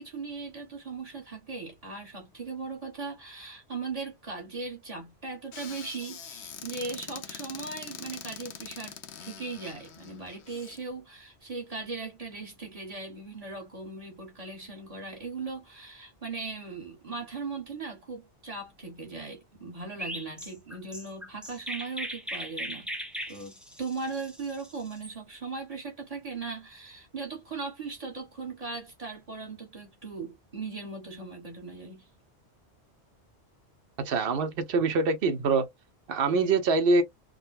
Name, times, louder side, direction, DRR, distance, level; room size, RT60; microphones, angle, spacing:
voice 1, 0.0-22.9 23.3-32.0, right 4 dB, 35° right, 1.6 m, -38 dB
Squeak / Cupboard open or close, 5.5-10.8, left 8 dB, 75° left, 0.9 m, -44 dB
Chirp tweet, 20.0-25.1, equal, ahead, 0.4 m, -38 dB
voice 2, 34.0-35.7 36.1-37.0, right 3 dB, 60° right, 0.9 m, -24 dB
3.8 x 2.2 x 2.4 m
omnidirectional pair, 1.2 m